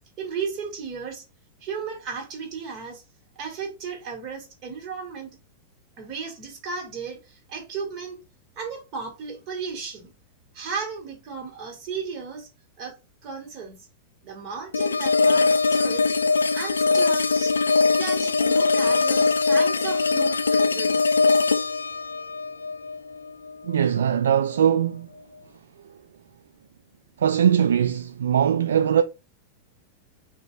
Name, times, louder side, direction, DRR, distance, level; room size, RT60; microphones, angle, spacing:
voice 1, 0.2-1.2 1.6-3.0 3.4-5.4 6.0-8.2 8.6-10.1 10.5-12.5 12.8-13.0 13.2-13.9 14.2-16.1 16.5-17.6 18.0-21.2, right 5 dB, 40° right, 2.1 m, -35 dB
sound 1, 14.7-23.8, left 4 dB, 75° left, 0.4 m, -21 dB
voice 2, 23.6-25.1 27.2-29.0, right 9 dB, 65° right, 0.3 m, -21 dB
3.9 x 2.9 x 4.6 m
figure-of-eight pair, 90°, 0 cm